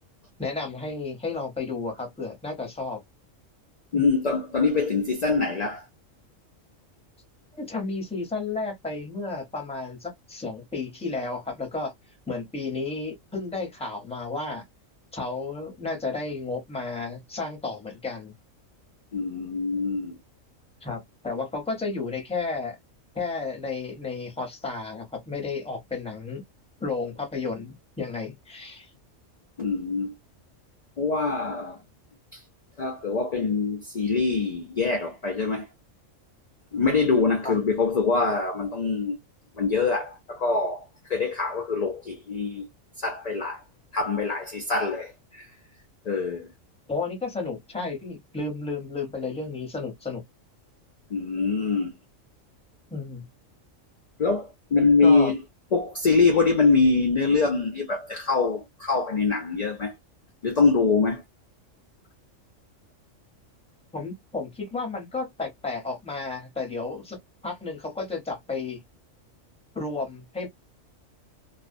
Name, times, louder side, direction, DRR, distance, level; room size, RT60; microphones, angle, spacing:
voice 1, 0.4-3.0 3.9-4.0 7.5-11.9 12.3-14.6 15.1-18.3 20.8-22.8 23.1-26.4 26.8-28.9 37.4-37.6 46.9-50.2 52.9-53.2 55.0-55.3 63.9-68.8 69.7-70.5, left 3 dB, 5° left, 0.6 m, -32 dB
voice 2, 3.9-5.8 19.1-20.2 29.6-30.1 31.0-31.8 32.3-32.4 32.8-35.7 36.7-39.2 39.6-40.8 41.1-42.6 43.0-43.6 43.9-45.5 46.1-46.5 51.1-51.9 54.2-55.4 55.7-59.9 60.4-61.2, left 4 dB, 55° left, 0.4 m, -24 dB
2.4 x 2.1 x 2.5 m
omnidirectional pair, 1.3 m